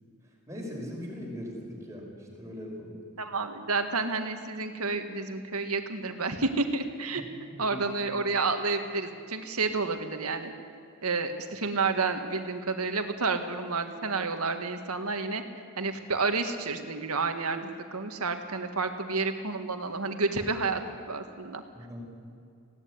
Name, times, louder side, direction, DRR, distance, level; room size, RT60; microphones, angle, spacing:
voice 1, 0.5-3.0 7.6-7.8 21.7-22.1, equal, 15° right, -2 dB, 5.3 m, -40 dB
voice 2, 3.2-7.2 7.6-10.5 11.0-15.4 15.8-21.6, right 3 dB, 90° right, 7 dB, 1.8 m, -30 dB
19.5 x 16.5 x 9.7 m, 2.4 s
head